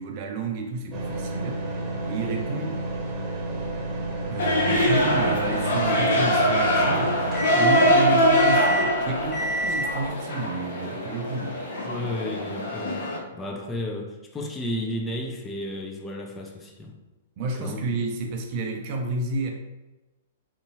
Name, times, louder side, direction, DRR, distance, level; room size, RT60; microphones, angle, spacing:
voice 1, 0.0-1.6 2.1-2.8 4.3-7.2 7.6-11.6 17.4-19.5, right 3 dB, 40° right, 3 dB, 0.5 m, -30 dB
sound 1, 0.9-10.1, right 1 dB, 15° right, 1.0 m, -30 dB
sound 2, 4.4-13.2, equal, 55° left, 0.6 m, -23 dB
voice 2, 11.8-16.9 17.6-17.8, left 1 dB, 15° left, 0 dB, 0.5 m, -33 dB
3.4 x 2.7 x 2.7 m, 1.1 s
figure-of-eight pair, 105°, 0 cm